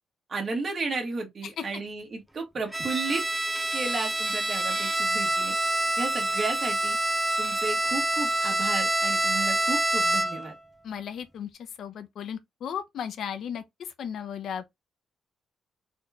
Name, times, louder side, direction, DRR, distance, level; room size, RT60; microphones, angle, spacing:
voice 1, 0.3-3.2 3.7-5.5 6.0-7.0 7.4-10.6, right 4 dB, 40° right, 2.1 m, -33 dB
Bowed string instrument, 2.7-10.5, right 1 dB, 10° right, 0.6 m, -26 dB
voice 2, 10.8-11.5 11.8-13.6 14.0-14.7, left 8 dB, 70° left, 0.9 m, -35 dB
4.4 x 4.3 x 2.5 m
cardioid pair, 120°, 0 cm